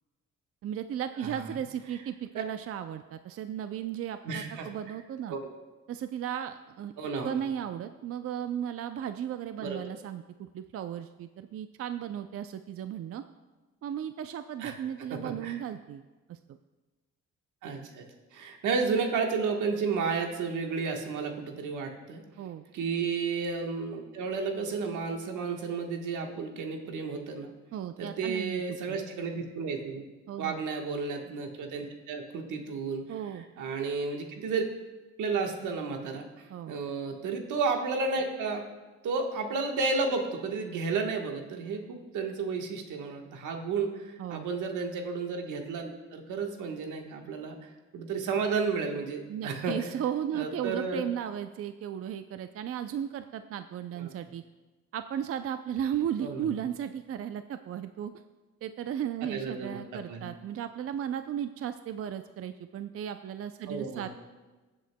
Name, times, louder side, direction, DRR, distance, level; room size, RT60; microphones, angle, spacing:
voice 1, 0.6-5.4 5.9-6.9 7.2-13.2 13.8-16.0 16.3-16.6 22.4-22.6 27.7-29.0 30.3-30.6 33.1-33.4 36.5-36.7 44.2-44.5 49.3-54.4 54.9-58.1 58.6-64.1, right 9 dB, 50° right, 9 dB, 0.4 m, -35 dB
voice 2, 4.2-4.7 5.3-5.4 7.0-7.4 9.6-9.9 14.6-14.7 15.1-15.6 17.6-18.1 18.3-22.2 22.7-27.5 28.0-30.0 30.4-33.1 33.6-34.6 35.2-38.6 39.0-49.8 50.3-51.0 54.0-54.1 56.2-56.5 59.3-60.3 63.7-64.1, right 4 dB, 80° right, 3 dB, 1.3 m, -32 dB
17.0 x 7.7 x 2.2 m, 1.2 s
cardioid pair, 90°, 30 cm